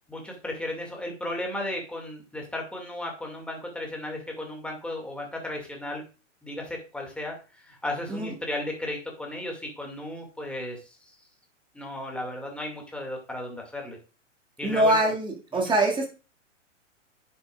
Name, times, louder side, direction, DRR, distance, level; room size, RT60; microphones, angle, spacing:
voice 1, 0.1-6.0 6.4-11.0 11.7-14.0 14.6-15.1 15.5-15.7, left 1 dB, 5° left, 0 dB, 2.1 m, -35 dB
voice 2, 14.6-16.1, right 1 dB, 10° right, 1 dB, 2.0 m, -23 dB
9.8 x 6.9 x 2.4 m, 0.33 s
hypercardioid pair, 120°, 38 cm